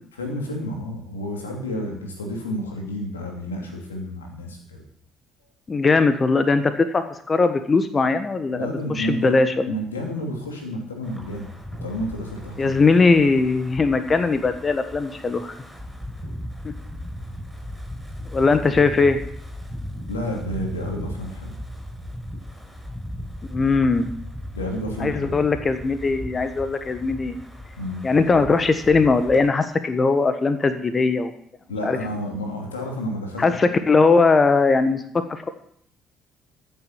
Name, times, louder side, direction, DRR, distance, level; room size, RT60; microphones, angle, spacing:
voice 1, 0.2-4.8 8.5-9.4 9.7-12.8 16.2-16.4 20.1-21.6 24.5-25.4 27.8-28.0 31.7-33.6, equal, 90° left, 1 dB, 2.7 m, -30 dB
voice 2, 5.7-9.7 12.6-15.5 16.6-16.7 18.3-19.2 23.5-24.1 25.0-27.4 28.0-31.3 31.8-32.0 33.4-35.0 35.3-35.5, left 4 dB, 35° left, 9 dB, 1.3 m, -20 dB
Wind, 11.0-29.5, equal, 5° right, 6.6 m, -37 dB
14.5 x 7.3 x 7.3 m, 0.67 s
hypercardioid pair, 50°, 0 cm